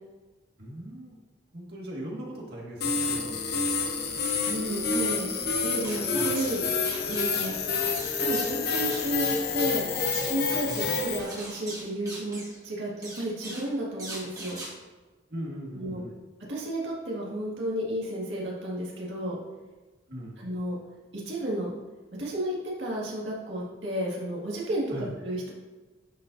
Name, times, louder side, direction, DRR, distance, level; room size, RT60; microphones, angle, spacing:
voice 1, 0.6-1.2 1.5-3.8 6.1-6.3 10.7-10.8 15.3-16.1 20.1-20.4 24.9-25.1, equal, 60° right, -3 dB, 1.8 m, -39 dB
sound 1, 2.8-11.2, left 5 dB, 60° left, 0.8 m, -28 dB
voice 2, 4.4-6.7 7.1-7.6 8.2-9.8 10.2-10.7 10.9-14.6 15.8-16.0 16.5-19.4 20.4-20.8 21.3-21.7 22.2-25.5, right 1 dB, 80° right, -5 dB, 1.8 m, -32 dB
sound 2, 5.8-6.6 6.8-12.6 13.0-13.7 14.0-14.7, right 1 dB, 20° right, 2.2 m, -40 dB
10.0 x 5.1 x 2.6 m, 1.2 s
head